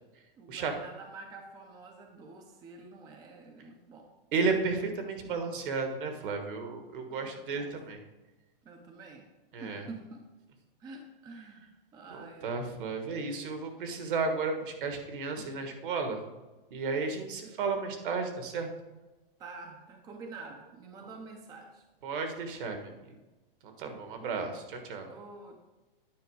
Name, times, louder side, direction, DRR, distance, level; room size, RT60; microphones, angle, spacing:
voice 1, 0.4-4.1 7.1-7.7 8.6-9.3 9.6-10.3 10.8-12.7 19.4-21.8 25.1-25.6, right 3 dB, 15° right, 3 dB, 0.5 m, -47 dB
voice 2, 4.3-8.0 9.5-9.8 12.4-16.2 16.7-18.7 22.0-22.9 23.6-25.1, right 4 dB, 60° right, 5 dB, 1.5 m, -33 dB
9.4 x 4.6 x 4.7 m, 1.1 s
hypercardioid pair, 145°, 29 cm